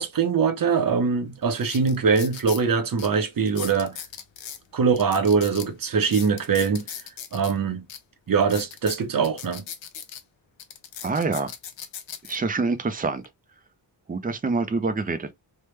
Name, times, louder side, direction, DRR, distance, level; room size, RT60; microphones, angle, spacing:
voice 1, 0.0-4.0 4.7-6.8 7.3-7.8 8.3-9.6, right 5 dB, 50° right, 0.7 m, -22 dB
sound 1, 0.9-1.0 1.5-2.6 3.0-3.1 3.5-4.6 5.0-7.5 7.9-8.0 8.4-10.2 10.6-12.4 13.0-13.3, left 8 dB, 85° left, 0.7 m, -38 dB
voice 2, 11.0-11.5 12.3-13.2 14.1-15.3, right 3 dB, 20° right, 0.4 m, -26 dB
3.3 x 2.1 x 3.1 m
wide cardioid pair, 120°, 45 cm